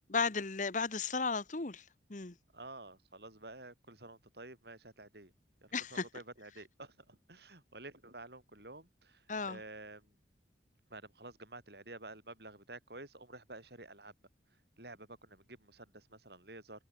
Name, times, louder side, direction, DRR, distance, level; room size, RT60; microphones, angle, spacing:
voice 1, 0.1-1.8 2.1-2.3 5.7-6.0 9.3-9.6, left 4 dB, 45° left, 1.2 m, -34 dB
voice 2, 2.5-5.3 5.6-10.2 10.9-14.1 14.8-16.9, right 2 dB, 60° right, 5.8 m, -51 dB
head